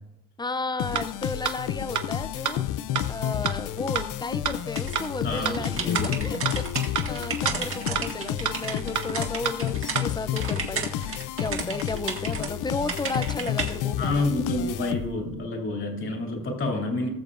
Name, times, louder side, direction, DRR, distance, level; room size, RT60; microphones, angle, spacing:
voice 1, 0.4-2.6 3.1-14.3, left 3 dB, 15° left, 0.4 m, -34 dB
sound 1, 0.8-15.4, left 11 dB, 70° left, 0.5 m, -31 dB
sound 2, 1.0-1.1 1.4-1.5 1.9-2.0 2.4-2.5 3.0-3.1 3.5-3.6 4.0-4.1 4.4-4.5 4.9-5.0 5.4-5.5 6.0-6.1 6.5-6.6 7.0-7.1 7.4-7.5 7.9-8.0 8.4-8.5 9.0-9.1 9.5-9.6 10.0-10.1, right 9 dB, 65° right, 1.0 m, -26 dB
sound 3, 4.8-10.0 10.4-12.5 12.9-13.7, right 5 dB, 40° right, 1.7 m, -33 dB
voice 2, 5.2-6.5 14.0-17.1, left 2 dB, 40° left, 2.5 m, -29 dB
19.5 x 6.7 x 2.5 m
cardioid pair, 110°, 32 cm